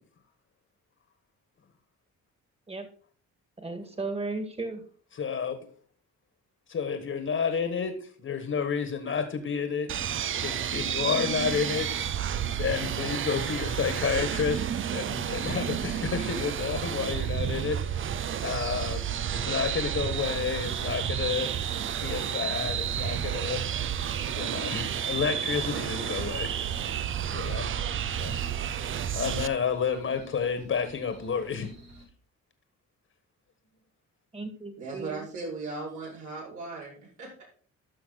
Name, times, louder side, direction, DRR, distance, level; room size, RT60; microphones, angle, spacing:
voice 1, 3.6-4.8 34.3-35.3, right 3 dB, 20° right, 8 dB, 2.0 m, -35 dB
voice 2, 5.2-5.7 6.7-10.0 10.4-12.0 12.6-17.9 18.4-19.1 19.3-21.5 22.0-23.6 24.3-26.5 27.3-27.8 28.2-28.4 28.8-31.7, left 6 dB, 45° left, 9 dB, 1.6 m, -30 dB
sound 1, 9.9-29.5, right 9 dB, 40° right, 0.5 m, -31 dB
sound 2, 19.3-32.0, right 1 dB, 60° right, 5.9 m, -51 dB
voice 3, 34.8-37.4, right 3 dB, 75° right, -5 dB, 5.9 m, -38 dB
13.0 x 5.8 x 4.1 m, 0.43 s
cardioid pair, 90°, 30 cm